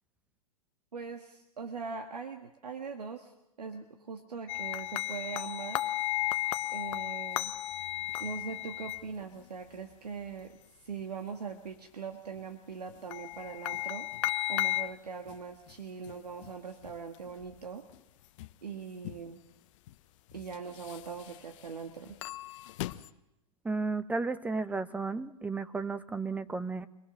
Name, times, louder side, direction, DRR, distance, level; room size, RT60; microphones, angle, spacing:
voice 1, 0.9-3.3 3.6-5.9 6.7-7.5 8.2-14.1 14.5-17.8 18.6-19.4 20.3-22.2, right 5 dB, 90° right, 5 dB, 1.9 m, -41 dB
sound 1, 4.5-9.0 12.9-14.9 15.3-15.4 15.7-15.8 16.1-16.2 16.4-16.5 16.8-16.9 17.3-17.5 17.9-18.0 18.4-18.5 19.0-19.2 19.9-20.0 20.3-21.4 22.1-23.1, left 17 dB, 50° left, 0.9 m, -34 dB
voice 2, 23.6-26.9, right 3 dB, 5° right, 13 dB, 0.8 m, -33 dB
24.5 x 19.5 x 6.5 m, 0.89 s
hypercardioid pair, 120°, 20 cm